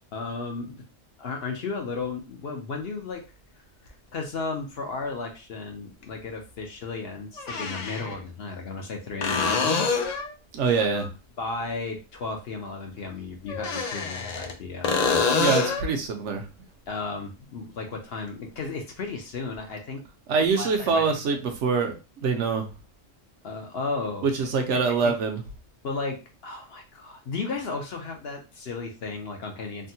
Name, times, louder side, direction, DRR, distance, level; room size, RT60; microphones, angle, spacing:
voice 1, 0.1-0.8 1.2-3.2 4.1-9.9 10.8-11.1 11.4-15.0 16.9-20.0 20.6-21.2 23.4-24.3 24.7-25.1 25.8-29.9, left 4 dB, 60° left, 3 dB, 0.8 m, -34 dB
sound 1, 3.9-4.0 6.0-6.1 7.4-8.2 9.2-10.3 13.5-14.5 14.8-15.9 19.5-19.6, left 4 dB, 85° left, 0.3 m, -26 dB
voice 2, 10.5-11.1 15.3-16.4 20.3-22.0 22.2-22.7 24.2-25.4, right 4 dB, 65° right, 5 dB, 1.0 m, -24 dB
3.5 x 2.2 x 2.7 m, 0.30 s
omnidirectional pair, 1.3 m